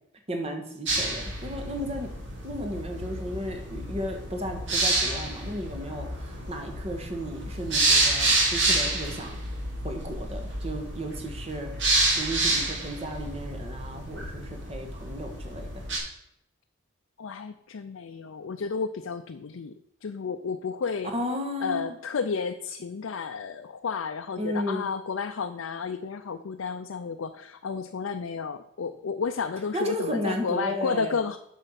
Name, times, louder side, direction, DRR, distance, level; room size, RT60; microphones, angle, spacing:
voice 1, 0.3-2.1 2.4-9.4 9.8-11.7 12.1-15.8 21.0-22.0 24.4-24.8 29.7-31.2, equal, 30° right, 4 dB, 1.5 m, -34 dB
sound 1, 0.9-16.0, right 2 dB, 60° right, 2.9 m, -29 dB
voice 2, 17.2-19.7 20.0-21.1 21.6-31.4, left 5 dB, 80° left, 7 dB, 0.5 m, -32 dB
9.0 x 6.4 x 5.8 m, 0.77 s
head